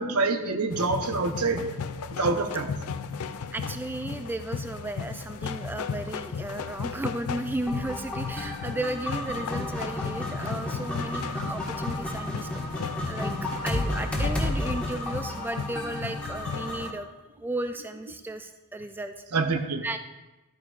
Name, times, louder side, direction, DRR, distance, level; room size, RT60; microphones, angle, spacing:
voice 1, 0.0-1.7 2.2-2.7 19.3-19.8, right 3 dB, 80° right, 7 dB, 0.8 m, -26 dB
sound 1, 0.7-16.9, left 5 dB, 75° left, 0.5 m, -35 dB
voice 2, 3.5-12.5 13.1-13.3 13.6-17.1 17.4-19.1 19.8-20.0, right 1 dB, 10° right, 8 dB, 0.3 m, -34 dB
sound 2, 7.7-16.9, left 1 dB, 5° left, 1.6 m, -32 dB
12.5 x 9.4 x 2.4 m, 1.1 s
head